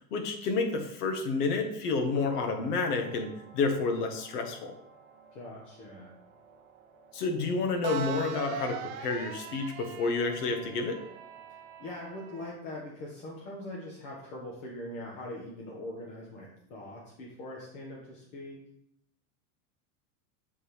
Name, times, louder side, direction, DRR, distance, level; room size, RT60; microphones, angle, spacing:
voice 1, 0.1-4.7 7.1-11.0, left 4 dB, 75° left, 6 dB, 1.5 m, -30 dB
sound 1, 2.2-12.5, right 7 dB, 35° right, 0.5 m, -44 dB
voice 2, 5.3-6.1 11.8-18.6, left 1 dB, 50° left, -3 dB, 1.6 m, -42 dB
7.3 x 5.6 x 3.4 m, 0.75 s
supercardioid pair, 165°, 47 cm